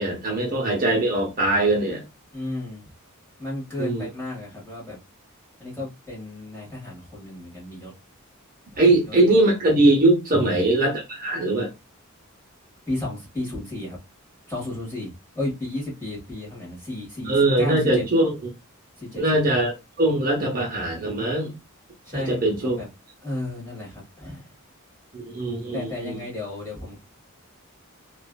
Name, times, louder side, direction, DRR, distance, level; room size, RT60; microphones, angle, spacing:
voice 1, 0.0-2.0 3.8-4.1 8.8-11.7 17.2-18.3 19.2-21.5 22.1-22.8 25.1-26.2, right 2 dB, 40° right, 0.8 m, -21 dB
voice 2, 2.3-2.9 3.4-5.0 5.6-7.9 8.7-9.5 10.3-10.6 12.9-14.0 14.5-18.0 19.0-19.2 22.0-22.9 23.2-24.5 25.7-27.0, left 1 dB, 10° left, 1.6 m, -33 dB
3.1 x 2.4 x 2.3 m
head